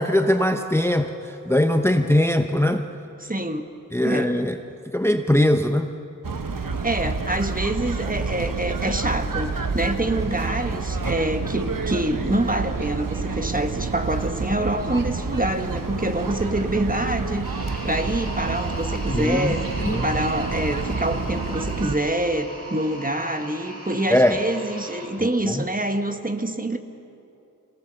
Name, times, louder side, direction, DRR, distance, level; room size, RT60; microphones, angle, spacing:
voice 1, 0.0-2.9 3.9-4.6 4.9-5.9 19.1-20.0 24.1-24.4 25.4-25.6, left 1 dB, 10° left, 7 dB, 0.8 m, -21 dB
voice 2, 3.2-3.7 4.0-4.3 6.8-17.5 17.8-26.8, right 1 dB, 25° right, 6 dB, 1.4 m, -26 dB
sound 1, 6.2-22.0, right 4 dB, 75° right, 1.1 m, -28 dB
sound 2, 17.4-25.1, right 1 dB, 45° right, 5.9 m, -38 dB
25.0 x 18.0 x 7.0 m, 2.8 s
wide cardioid pair, 45°, 33 cm